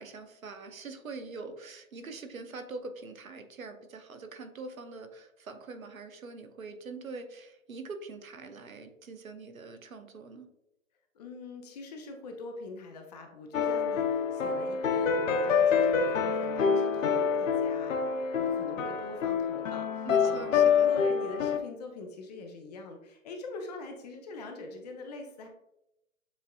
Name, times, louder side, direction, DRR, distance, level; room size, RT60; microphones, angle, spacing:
voice 1, 0.0-10.5 20.1-20.9, right 3 dB, 90° right, 7 dB, 0.8 m, -43 dB
voice 2, 11.1-18.0 18.3-25.5, left 3 dB, 30° left, 4 dB, 0.6 m, -43 dB
sound 1, 13.5-21.6, left 6 dB, 70° left, 0.7 m, -27 dB
7.1 x 2.6 x 2.3 m, 0.86 s
figure-of-eight pair, 130°, 40 cm